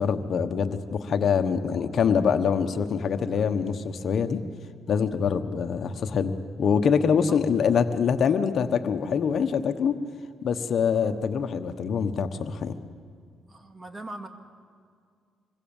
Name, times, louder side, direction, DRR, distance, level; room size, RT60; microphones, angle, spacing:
voice 1, 0.0-4.4 4.9-10.0 10.4-12.7, left 6 dB, 60° left, 8 dB, 1.3 m, -24 dB
voice 2, 13.5-14.3, right 2 dB, 25° right, 7 dB, 2.3 m, -40 dB
26.0 x 21.5 x 7.3 m, 2.2 s
cardioid pair, 90°, 0 cm